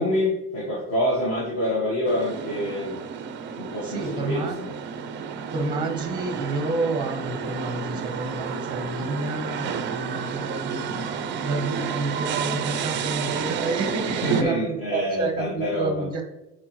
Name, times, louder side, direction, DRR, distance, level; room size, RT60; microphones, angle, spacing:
voice 1, 0.0-3.0 3.6-4.4 14.1-16.1, left 1 dB, 35° left, -4 dB, 1.4 m, -26 dB
sound 1, 2.1-14.4, right 7 dB, 30° right, 0.5 m, -31 dB
voice 2, 3.8-4.6 5.5-16.2, right 3 dB, 10° right, 5 dB, 0.9 m, -29 dB
8.5 x 4.5 x 3.1 m, 0.95 s
cardioid pair, 175°, 41 cm